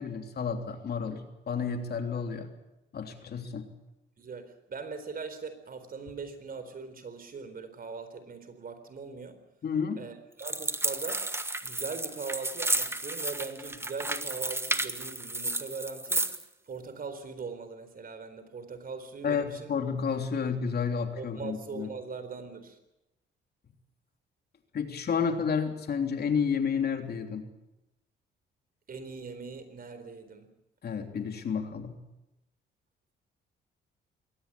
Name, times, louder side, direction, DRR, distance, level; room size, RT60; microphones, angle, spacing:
voice 1, 0.0-2.5 2.9-3.7 9.6-10.1 19.2-21.9 24.7-27.4 30.8-32.0, left 6 dB, 55° left, 5 dB, 3.3 m, -31 dB
voice 2, 4.2-9.4 10.0-11.3 11.6-16.4 16.7-19.7 21.2-22.8 28.9-30.5, right 4 dB, 45° right, 10 dB, 4.0 m, -41 dB
sound 1, 10.4-16.4, right 2 dB, 10° right, 1.4 m, -32 dB
22.0 x 18.0 x 8.7 m, 0.93 s
cardioid pair, 90°, 20 cm